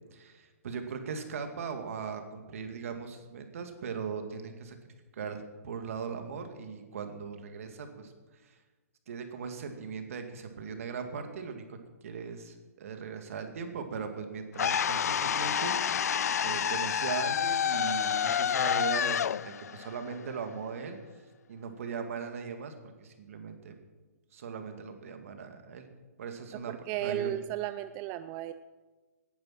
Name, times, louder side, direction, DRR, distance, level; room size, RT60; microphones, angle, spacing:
voice 1, 0.1-4.8 5.1-8.1 8.4-8.5 9.1-11.8 12.0-15.7 16.4-21.0 21.5-22.7 23.0-23.8 24.3-25.9 26.2-26.7 27.0-27.4, right 6 dB, 60° right, 6 dB, 2.3 m, -39 dB
sound 1, 14.6-20.7, left 8 dB, 75° left, 0.4 m, -29 dB
voice 2, 26.7-28.5, right 12 dB, 25° right, 12 dB, 0.4 m, -34 dB
18.0 x 10.5 x 6.0 m, 1.3 s
hypercardioid pair, 155°, 9 cm